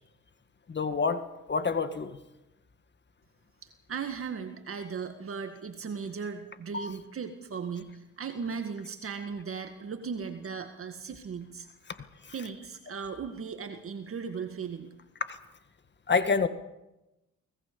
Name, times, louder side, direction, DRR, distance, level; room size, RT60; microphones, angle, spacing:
voice 1, 0.7-1.2 1.5-2.1 6.7-6.9 15.3-15.4 16.1-16.5, left 5 dB, 35° left, 10 dB, 1.8 m, -27 dB
voice 2, 3.6-11.7 12.3-14.9, right 6 dB, 45° right, 6 dB, 2.0 m, -37 dB
25.5 x 19.0 x 7.0 m, 0.96 s
cardioid pair, 90°, 30 cm